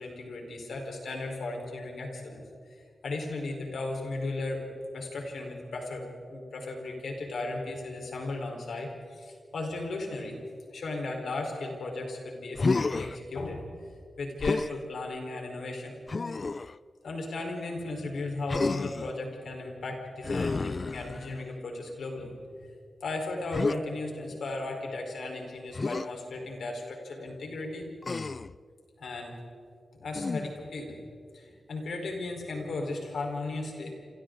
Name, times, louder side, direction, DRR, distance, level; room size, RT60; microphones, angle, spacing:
voice 1, 0.0-2.7 3.0-10.4 10.7-13.6 14.2-16.0 17.0-22.3 22.6-22.7 23.0-27.8 29.0-29.3 29.9-31.0 31.3-34.0, left 2 dB, 85° left, 2 dB, 4.4 m, -36 dB
Human voice, 12.5-13.2 14.4-14.8 16.1-16.7 18.5-19.1 20.2-21.5 23.5-23.8 25.7-26.1 28.0-28.6 30.1-30.7, left 3 dB, 40° left, 0.4 m, -30 dB
28.0 x 27.5 x 4.0 m, 2.2 s
wide cardioid pair, 115°, 0 cm